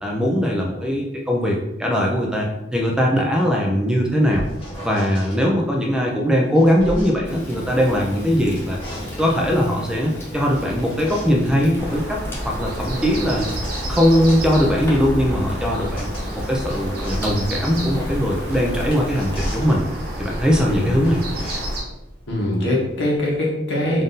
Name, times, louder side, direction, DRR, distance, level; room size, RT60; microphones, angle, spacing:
voice 1, 0.0-4.5 4.8-8.8 9.2-12.2 12.5-13.5 13.9-16.1 16.3-19.8 20.2-21.2, equal, 5° right, -1 dB, 0.4 m, -20 dB
sound 1, 4.0-5.4 6.2-8.0 8.4-9.5 10.3-13.9 14.3-23.4, equal, 30° left, 1.3 m, -36 dB
Fire, 7.2-19.4, left 1 dB, 15° left, 0.8 m, -35 dB
sound 2, 11.7-21.8, right 1 dB, 55° right, 1.0 m, -29 dB
voice 2, 22.3-24.0, left 1 dB, 75° left, -3 dB, 1.2 m, -22 dB
3.7 x 2.5 x 3.9 m, 0.92 s
head